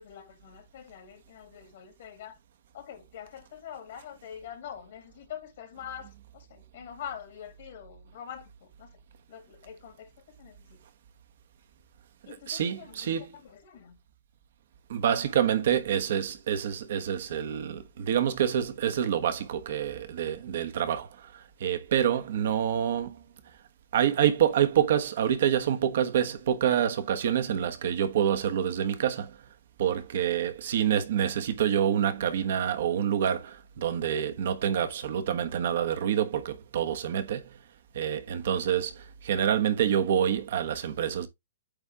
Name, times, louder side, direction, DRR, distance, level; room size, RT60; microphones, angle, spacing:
voice 1, 0.0-2.3 2.7-8.9 9.3-10.1 10.4-10.8 12.2-14.0 19.9-20.0, left 9 dB, 60° left, 2.4 m, -45 dB
voice 2, 12.2-13.4 14.9-23.2 23.9-29.4 29.8-37.6 37.9-41.3, right 9 dB, 60° right, 1.2 m, -27 dB
8.7 x 3.6 x 3.5 m
hypercardioid pair, 115°, 0 cm